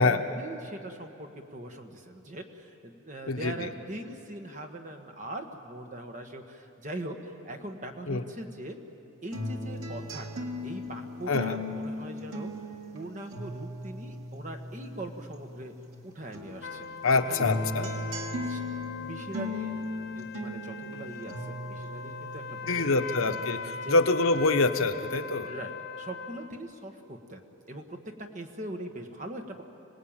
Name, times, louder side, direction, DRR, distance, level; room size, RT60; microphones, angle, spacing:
voice 1, 0.0-8.8 9.2-12.5 12.9-15.7 16.0-17.9 18.4-18.6 19.0-19.8 20.1-23.3 23.8-24.0 25.5-27.4 27.7-29.6, right 1 dB, 35° right, 4 dB, 1.5 m, -41 dB
sound 1, 9.3-16.0 16.3-24.0 24.4-25.3, left 1 dB, 85° right, 2.2 m, -38 dB
sound 2, 16.6-26.5, left 5 dB, 55° left, 0.9 m, -40 dB
voice 2, 17.0-17.9 22.7-23.6 23.9-25.5, left 3 dB, 75° left, 7 dB, 1.1 m, -25 dB
26.5 x 19.0 x 9.0 m, 2.9 s
head